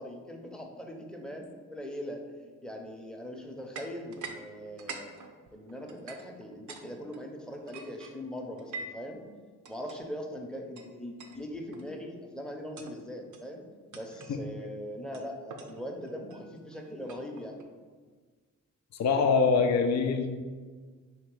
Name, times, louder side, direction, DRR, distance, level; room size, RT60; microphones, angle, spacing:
voice 1, 0.0-2.2 2.6-5.1 5.5-9.2 9.6-13.6 13.9-17.5, equal, ahead, 1 dB, 0.7 m, -41 dB
sound 1, 3.7-4.4 4.7-6.8 7.1-9.1 9.6-10.0 10.8-10.9 11.2-11.4 11.7-12.0 12.6-13.0 13.3-13.5 13.9-14.4 15.1-17.6, right 4 dB, 50° right, 0.6 m, -45 dB
voice 2, 18.9-20.3, left 5 dB, 45° left, 5 dB, 0.5 m, -24 dB
3.2 x 2.9 x 4.6 m, 1.5 s
supercardioid pair, 40°, 38 cm